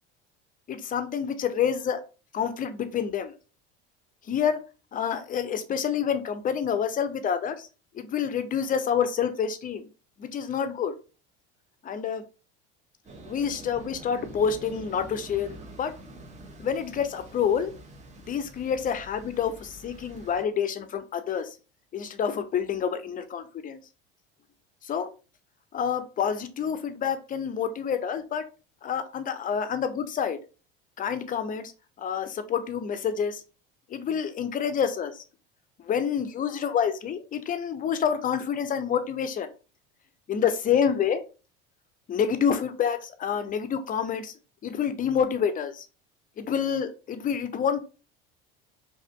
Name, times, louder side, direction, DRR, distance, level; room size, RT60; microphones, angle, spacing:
voice 1, 0.7-2.0 2.3-3.3 4.3-4.6 4.9-7.7 7.9-9.9 10.2-10.9 11.8-12.2 13.3-15.9 16.6-17.7 18.3-21.5 21.9-23.8 24.8-25.1 25.7-28.4 28.8-30.4 31.0-31.7 32.0-33.4 33.9-35.2 35.8-39.5 40.3-41.2 42.1-44.3 44.6-45.8 46.4-47.8, left 7 dB, 30° left, 10 dB, 0.4 m, -28 dB
sound 1, 13.0-20.4, right 1 dB, 25° right, 0.6 m, -46 dB
2.6 x 2.4 x 2.4 m, 0.34 s
hypercardioid pair, 85°, 30 cm